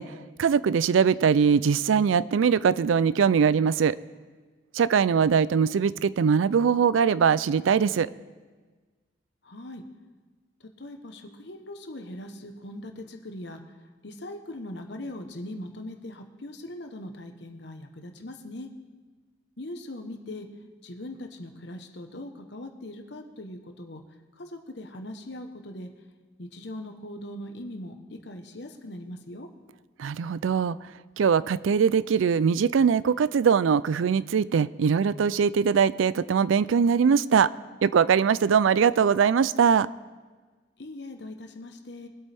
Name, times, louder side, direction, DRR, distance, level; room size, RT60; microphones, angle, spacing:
voice 1, 0.0-4.0 4.7-8.1 30.0-30.8 31.2-37.5 37.8-39.9, right 6 dB, 85° right, 18 dB, 0.4 m, -22 dB
voice 2, 9.4-9.8 10.6-13.6 14.0-18.7 19.6-20.5 20.8-24.0 24.4-25.9 26.4-29.5 40.8-42.1, left 1 dB, 60° left, 5 dB, 1.1 m, -40 dB
22.5 x 8.4 x 3.5 m, 1.4 s
head